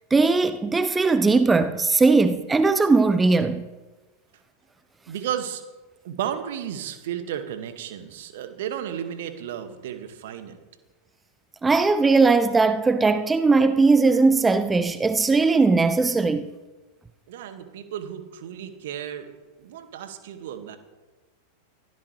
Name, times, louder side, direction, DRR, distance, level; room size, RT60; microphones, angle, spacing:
voice 1, 0.1-3.6 11.6-16.5, right 3 dB, 10° right, 0.8 m, -19 dB
voice 2, 5.1-5.6 6.0-10.6 17.3-19.3 19.6-20.8, right 9 dB, 55° right, 2.0 m, -33 dB
24.0 x 16.0 x 3.4 m
figure-of-eight pair, 90°, 0 cm